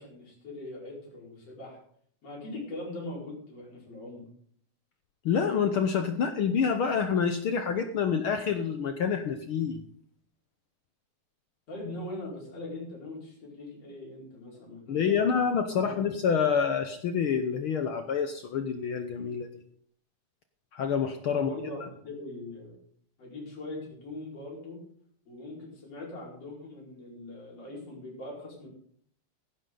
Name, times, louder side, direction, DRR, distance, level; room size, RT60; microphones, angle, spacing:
voice 1, 0.0-1.8 2.2-4.2 11.7-15.4 15.7-16.0 21.3-22.8 23.2-24.8 25.3-28.7, left 2 dB, 50° left, -4 dB, 6.0 m, -41 dB
voice 2, 5.2-9.8 14.9-19.5 20.7-21.5, left 6 dB, 80° left, 7 dB, 1.2 m, -27 dB
16.0 x 11.5 x 3.9 m, 0.62 s
omnidirectional pair, 3.6 m